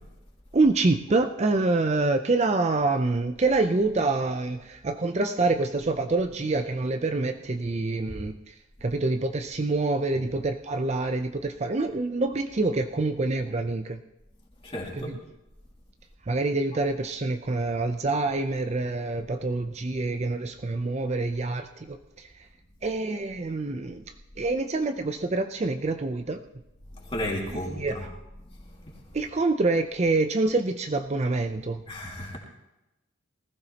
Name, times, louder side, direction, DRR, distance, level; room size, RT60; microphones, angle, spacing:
voice 1, 0.5-8.6 8.8-14.0 14.9-15.2 16.2-22.5 22.8-26.4 27.5-28.1 29.1-31.8, right 3 dB, 30° right, 7 dB, 0.5 m, -26 dB
voice 2, 14.6-15.1 26.9-28.1 28.5-29.0 31.9-32.4, left 1 dB, 25° left, -2 dB, 2.8 m, -34 dB
19.5 x 14.5 x 2.9 m, 0.95 s
head